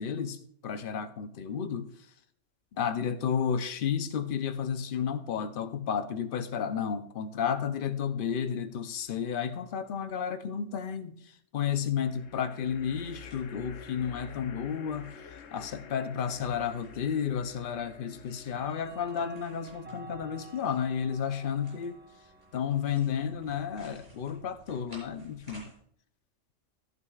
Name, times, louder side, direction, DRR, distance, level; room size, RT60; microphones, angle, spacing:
voice 1, 0.0-1.9 2.8-11.2 11.5-15.1 15.5-22.0 22.5-25.7, left 7 dB, 50° left, 0.7 m, -32 dB
sound 1, 8.9-9.5 12.0-23.3, left 7 dB, 75° left, 1.2 m, -51 dB
sound 2, 12.9-25.7, right 1 dB, 35° right, 5.6 m, -59 dB
Clock, 16.3-16.4 17.7-24.5, right 3 dB, 10° right, 0.7 m, -53 dB
13.5 x 11.0 x 2.4 m
omnidirectional pair, 1.3 m